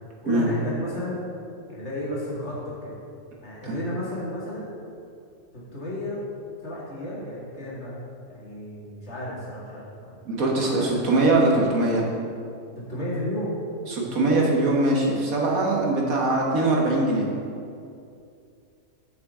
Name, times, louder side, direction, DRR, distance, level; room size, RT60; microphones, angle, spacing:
voice 1, 0.2-1.2 1.7-2.9 3.4-4.7 5.5-6.2 6.6-8.0 8.3-10.2 10.5-10.9 12.8-13.6, left 1 dB, 55° left, -7 dB, 2.2 m, -33 dB
voice 2, 10.3-12.1 13.9-17.3, right 2 dB, 90° right, -2 dB, 1.7 m, -22 dB
8.8 x 6.8 x 3.6 m, 2.5 s
omnidirectional pair, 1.4 m